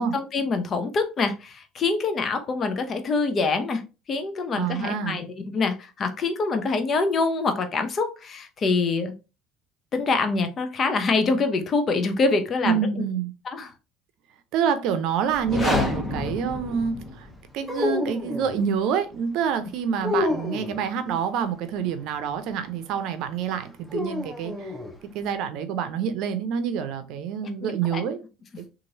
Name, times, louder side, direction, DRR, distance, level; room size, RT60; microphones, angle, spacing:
voice 1, 0.0-9.1 9.9-12.8 13.5-13.7 27.6-28.0, left 4 dB, 40° left, 0.6 m, -25 dB
voice 2, 4.5-5.2 12.6-13.3 14.5-17.3 17.5-24.7 25.1-28.2 28.6-28.7, right 7 dB, 70° right, 0.5 m, -27 dB
sound 1, 15.3-17.4, left 1 dB, 25° left, 1.1 m, -28 dB
sound 2, 17.6-18.7 20.0-20.9 23.9-24.9, left 2 dB, 5° left, 0.8 m, -28 dB
3.0 x 2.5 x 2.7 m
supercardioid pair, 85°, 0 cm